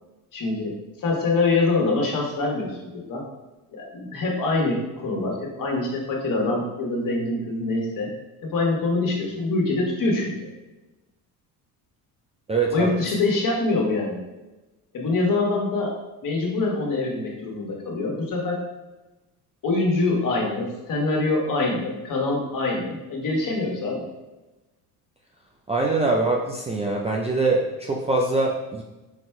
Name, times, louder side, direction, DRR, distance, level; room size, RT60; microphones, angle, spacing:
voice 1, 0.3-0.7 1.0-3.2 3.7-8.1 8.4-10.3 12.7-14.2 14.9-15.9 16.2-18.6 19.6-24.0, left 3 dB, 45° left, -1 dB, 1.4 m, -24 dB
voice 2, 12.5-13.1 25.7-28.8, right 3 dB, 15° right, -2 dB, 0.4 m, -23 dB
4.3 x 4.1 x 2.2 m, 1.1 s
supercardioid pair, 75°, 44 cm